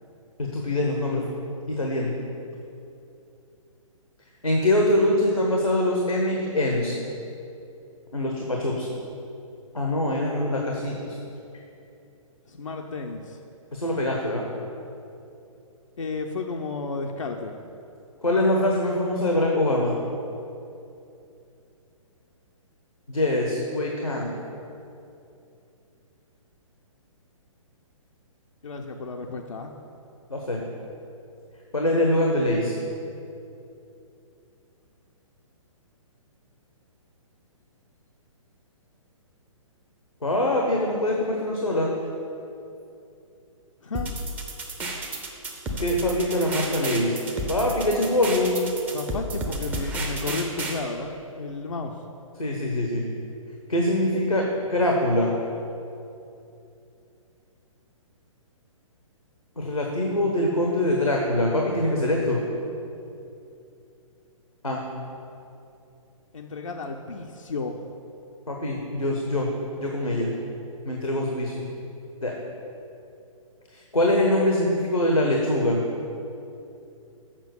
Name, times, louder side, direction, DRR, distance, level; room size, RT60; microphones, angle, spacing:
voice 1, 0.4-1.2 1.7-2.2 4.4-7.0 8.1-8.9 9.7-11.2 13.7-14.5 18.2-20.0 23.1-24.3 30.3-30.6 31.7-32.8 40.2-41.9 45.8-47.2 47.5-48.6 52.4-53.0 53.7-55.3 59.6-62.4 64.6-64.8 68.5-69.5 69.8-70.3 70.8-71.6 72.2-72.3 73.7-75.8, left 1 dB, 85° left, 0 dB, 1.2 m, -23 dB
voice 2, 12.5-13.4 16.0-17.5 28.6-29.7 43.8-44.1 48.9-52.0 66.3-67.9, left 3 dB, 65° left, 1 dB, 0.6 m, -33 dB
sound 1, 43.9-50.8, right 1 dB, 10° right, 0.6 m, -32 dB
7.5 x 5.8 x 6.8 m, 2.7 s
figure-of-eight pair, 125°, 17 cm